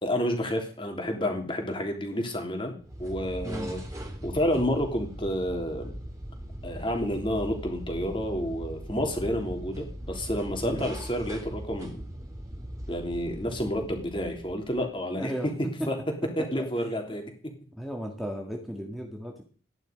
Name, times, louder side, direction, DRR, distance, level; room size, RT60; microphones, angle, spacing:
voice 1, 0.0-2.7 3.0-3.8 4.2-5.9 6.6-12.0 12.9-15.5 15.9-16.0 16.4-17.3, equal, 25° left, 3 dB, 3.3 m, -30 dB
sound 1, 2.8-15.0, equal, 15° right, 3.2 m, -40 dB
voice 2, 15.2-15.5 16.6-16.9 17.8-19.4, equal, ahead, 0 dB, 1.9 m, -35 dB
13.0 x 11.0 x 5.3 m, 0.41 s
head